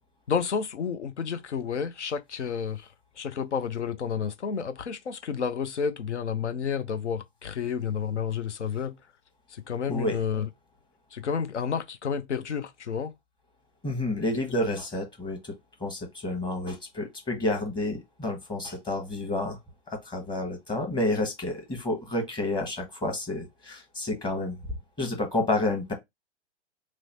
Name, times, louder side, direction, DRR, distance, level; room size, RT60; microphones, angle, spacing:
voice 1, 0.3-9.0 9.5-10.5 11.1-13.1, left 7 dB, 85° left, 0.6 m, -30 dB
voice 2, 13.8-15.5 15.8-19.6 19.9-24.6 25.0-25.9, left 2 dB, 15° left, 1.0 m, -30 dB
3.1 x 2.0 x 4.0 m
figure-of-eight pair, 110°, 34 cm